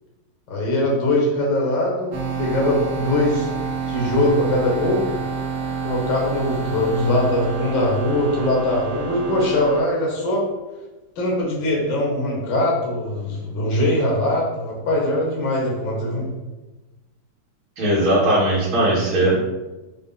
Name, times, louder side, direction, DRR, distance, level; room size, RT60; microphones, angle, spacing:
voice 1, 0.5-3.5 3.9-5.1 5.8-10.5 11.2-16.3, left 1 dB, 75° left, -3 dB, 1.7 m, -21 dB
sound 1, 2.1-9.8, right 5 dB, 80° right, 1.5 m, -28 dB
voice 2, 17.8-19.4, right 1 dB, 60° right, -7 dB, 1.3 m, -18 dB
5.1 x 2.1 x 3.5 m, 1.1 s
omnidirectional pair, 2.0 m